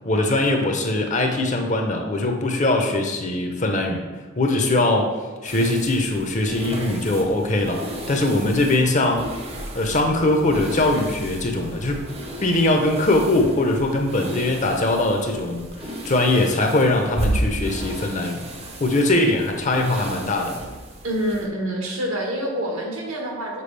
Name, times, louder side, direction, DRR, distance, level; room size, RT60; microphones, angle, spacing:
voice 1, 0.0-4.0 4.4-5.1 5.4-7.8 8.1-9.3 9.7-12.0 12.4-15.7 16.0-18.4 18.8-20.6, left 2 dB, 35° left, 3 dB, 0.7 m, -21 dB
sound 1, 5.5-21.5, right 1 dB, 30° right, 0.7 m, -34 dB
voice 2, 21.0-23.6, equal, 75° right, 0 dB, 1.3 m, -26 dB
6.8 x 4.7 x 3.3 m, 1.3 s
head